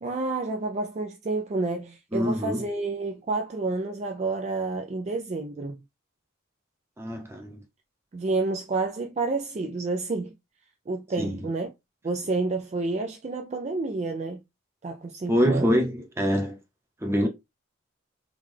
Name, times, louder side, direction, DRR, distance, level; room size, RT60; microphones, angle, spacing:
voice 1, 0.0-5.8 8.1-10.3 10.9-11.7 12.0-14.4 14.8-15.8, right 3 dB, 35° right, 0.3 m, -29 dB
voice 2, 2.1-2.6 7.0-7.6 11.2-11.5 15.3-16.6 17.0-17.3, equal, 15° right, 0.7 m, -25 dB
3.6 x 2.3 x 3.3 m
head